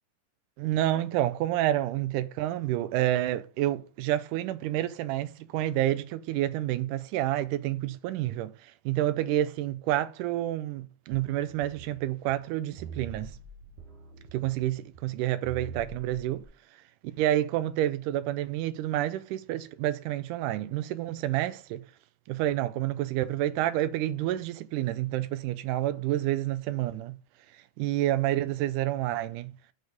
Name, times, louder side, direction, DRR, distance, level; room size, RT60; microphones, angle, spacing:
voice 1, 0.6-8.5 8.9-13.3 14.3-16.4 17.2-21.8 22.3-27.1 27.8-29.5, right 13 dB, 90° right, 2.1 m, -29 dB
sound 1, 11.1-16.4, right 4 dB, 50° right, 0.7 m, -46 dB
6.7 x 6.3 x 5.2 m
omnidirectional pair, 3.6 m